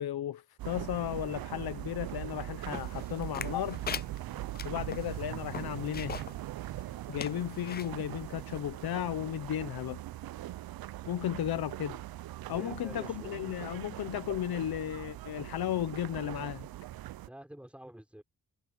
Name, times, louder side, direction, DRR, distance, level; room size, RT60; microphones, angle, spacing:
voice 1, 0.0-3.8 4.6-6.2 7.1-10.0 11.0-12.0 12.5-16.7, left 11 dB, 80° left, 0.9 m, -34 dB
sound 1, 0.6-17.3, right 15 dB, 70° right, 0.5 m, -41 dB
sound 2, 2.7-6.4 6.8-6.9 7.2-7.9 8.5-8.6, left 7 dB, 30° left, 0.4 m, -40 dB
voice 2, 12.5-13.3 17.3-18.2, right 1 dB, 5° right, 3.8 m, -48 dB
wide cardioid pair, 170°, 37 cm